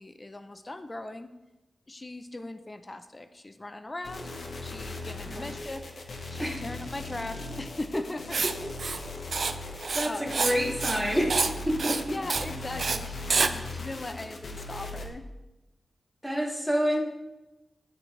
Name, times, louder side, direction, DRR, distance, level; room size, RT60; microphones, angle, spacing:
voice 1, 0.0-1.3 1.9-4.3 4.6-5.9 6.3-8.7 10.0-10.4 12.1-15.3, left 2 dB, 25° left, 9 dB, 0.4 m, -39 dB
sound 1, 4.0-15.1, left 2 dB, 60° left, 0.9 m, -39 dB
Writing, 8.3-8.5 8.8-9.0 9.3-9.5 9.8-10.6 10.8-11.0 11.3-11.5 11.8-12.0 12.3-12.5 12.8-13.0 13.3-13.5, right 4 dB, 55° right, 0.4 m, -27 dB
voice 2, 9.9-11.3 11.7-12.0 16.2-17.0, equal, ahead, -3 dB, 1.8 m, -27 dB
11.5 x 4.5 x 3.0 m, 1.0 s
wide cardioid pair, 105°, 0 cm